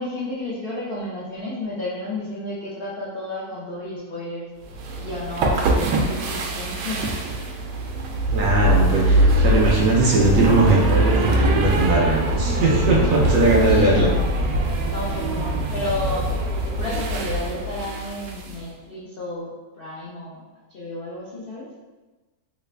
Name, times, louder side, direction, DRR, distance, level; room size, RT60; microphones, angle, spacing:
voice 1, 0.0-4.5 5.0-7.5 13.6-14.3 14.8-16.3 16.6-19.5 19.8-20.4 20.7-21.7, left 1 dB, 75° left, -6 dB, 0.5 m, -32 dB
sound 1, 4.7-18.6, right 1 dB, 85° right, 1.2 m, -22 dB
voice 2, 8.3-14.1, right 2 dB, 65° right, -3 dB, 0.9 m, -19 dB
3.2 x 2.3 x 3.3 m, 1.2 s
omnidirectional pair, 1.7 m